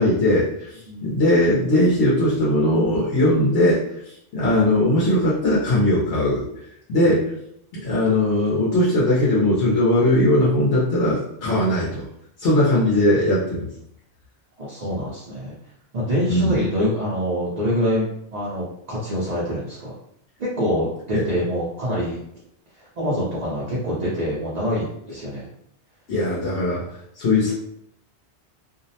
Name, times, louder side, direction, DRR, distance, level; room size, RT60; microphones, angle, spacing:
voice 1, 0.0-3.8 4.0-6.4 6.9-7.3 7.8-12.0 12.4-13.7 16.3-16.6 21.1-21.2 26.1-26.8 27.2-27.5, left 1 dB, 80° left, -7 dB, 1.0 m, -19 dB
voice 2, 14.6-15.5 15.9-19.9 20.4-22.2 23.0-25.5, equal, 45° right, -7 dB, 0.6 m, -25 dB
2.6 x 2.0 x 2.7 m, 0.74 s
omnidirectional pair, 1.2 m